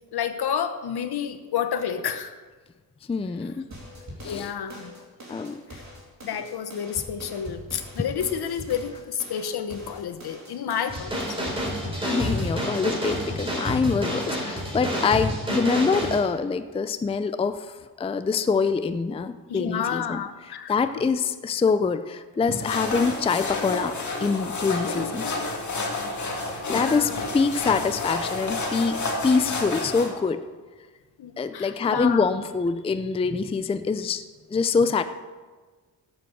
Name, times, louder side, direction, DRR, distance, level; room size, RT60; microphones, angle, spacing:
voice 1, 0.1-2.3 4.2-4.9 5.7-5.8 6.2-11.5 19.5-20.7 24.9-25.4 26.7-27.2 31.2-32.3, left 8 dB, 70° left, 9 dB, 1.0 m, -30 dB
voice 2, 3.1-3.7 4.0-4.5 5.3-5.6 12.1-20.2 20.7-23.9 24.2-25.3 26.7-30.4 31.4-34.2 34.5-35.0, left 5 dB, 15° left, 10 dB, 0.4 m, -25 dB
sound 1, 3.7-11.7, equal, 45° right, 3.2 m, -42 dB
sound 2, 10.9-16.2, equal, 15° right, 3.7 m, -28 dB
sound 3, 22.5-30.1, left 3 dB, 45° left, 2.2 m, -30 dB
12.5 x 7.9 x 6.9 m, 1.4 s
wide cardioid pair, 125°, 40 cm